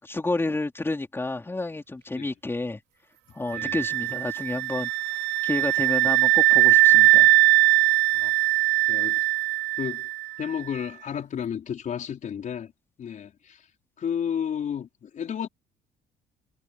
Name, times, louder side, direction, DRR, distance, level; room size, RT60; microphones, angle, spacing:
voice 1, 0.0-2.8 3.3-4.9 5.4-7.3, left 2 dB, 15° left, 3.9 m, -30 dB
sound 1, 3.5-10.3, right 18 dB, 90° right, 0.4 m, -20 dB
voice 2, 8.9-9.2 9.8-10.1 10.4-12.7 13.0-13.7 14.0-15.5, left 8 dB, 50° left, 4.4 m, -32 dB
cardioid pair, 110°, 17 cm